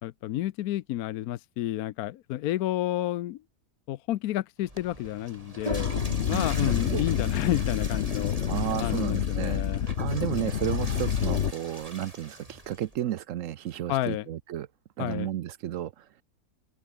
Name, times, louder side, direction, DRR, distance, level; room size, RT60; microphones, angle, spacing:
voice 1, 0.0-3.4 3.9-5.9 6.3-8.3 8.8-9.9 13.9-14.2 15.0-15.3, left 14 dB, 70° left, 1.0 m, -30 dB
Water / Toilet flush, 4.6-13.0, right 1 dB, 20° right, 6.7 m, -41 dB
sound 1, 5.7-11.5, left 8 dB, 50° left, 1.1 m, -28 dB
voice 2, 6.3-7.0 8.5-9.6 10.0-14.7 15.0-16.2, right 12 dB, 65° right, 0.8 m, -33 dB
omnidirectional pair, 1.9 m